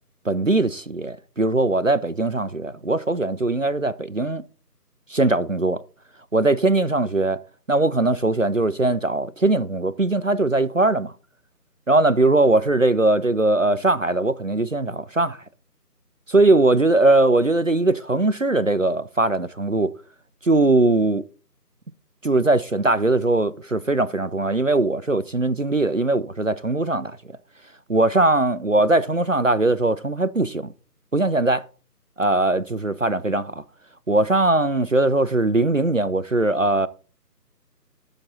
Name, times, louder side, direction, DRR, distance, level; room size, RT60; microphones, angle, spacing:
voice 1, 0.3-4.4 5.1-5.8 6.3-7.4 7.7-11.1 11.9-15.4 16.3-19.9 20.4-21.2 22.2-27.1 27.9-30.7 31.1-31.6 32.2-33.5 34.1-36.9, right 2 dB, 55° right, 0.5 m, -20 dB
11.0 x 7.0 x 4.0 m
figure-of-eight pair, 175°, 48 cm